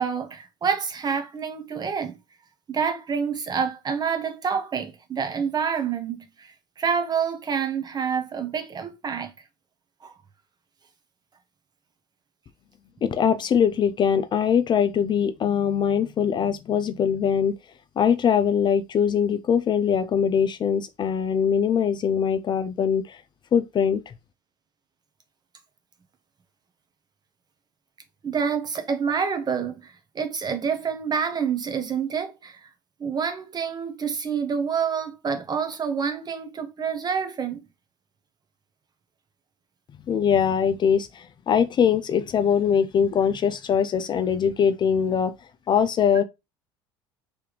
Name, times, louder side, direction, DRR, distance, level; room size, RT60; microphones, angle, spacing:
voice 1, 0.0-2.2 2.7-9.3 10.0-10.1 28.2-32.7 33.0-37.6, right 6 dB, 30° right, 1.1 m, -27 dB
voice 2, 13.0-17.6 18.0-23.2 23.5-24.1 40.1-45.3 45.7-46.2, left 7 dB, 35° left, 0.4 m, -22 dB
3.4 x 3.4 x 3.1 m
hypercardioid pair, 85°, 13 cm